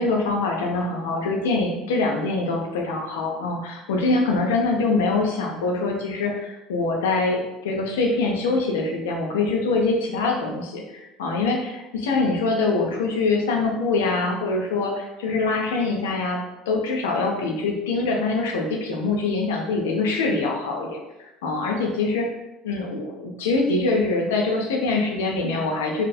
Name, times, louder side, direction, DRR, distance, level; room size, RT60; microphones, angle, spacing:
voice 1, 0.0-16.4 16.7-21.0 21.4-22.3 22.6-26.0, left 3 dB, 70° left, 1 dB, 0.5 m, -24 dB
2.9 x 2.8 x 2.3 m, 0.95 s
figure-of-eight pair, 65°, 0 cm